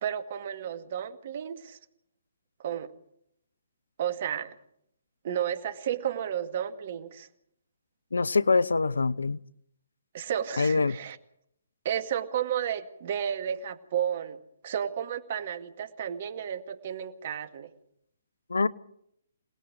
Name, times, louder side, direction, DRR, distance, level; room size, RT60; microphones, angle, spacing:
voice 1, 0.0-1.8 2.6-2.9 4.0-4.6 5.2-7.3 10.1-11.2 11.8-17.7, right 9 dB, 45° right, 2.1 m, -32 dB
voice 2, 8.1-9.4 10.6-11.0 18.5-18.7, left 4 dB, 80° left, 0.9 m, -24 dB
27.5 x 19.5 x 4.9 m
figure-of-eight pair, 135°, 0 cm